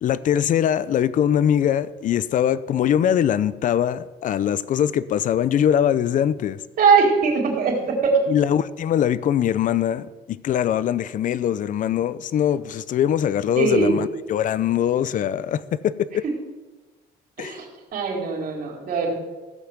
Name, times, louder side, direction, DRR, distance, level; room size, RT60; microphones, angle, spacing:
voice 1, 0.0-6.6 8.3-16.2 17.4-17.6, left 10 dB, 50° left, 16 dB, 0.6 m, -22 dB
voice 2, 6.8-8.1 13.6-13.9 17.4-19.1, right 5 dB, 60° right, 0 dB, 4.3 m, -21 dB
16.5 x 5.8 x 8.0 m, 1.2 s
cardioid pair, 110°, 17 cm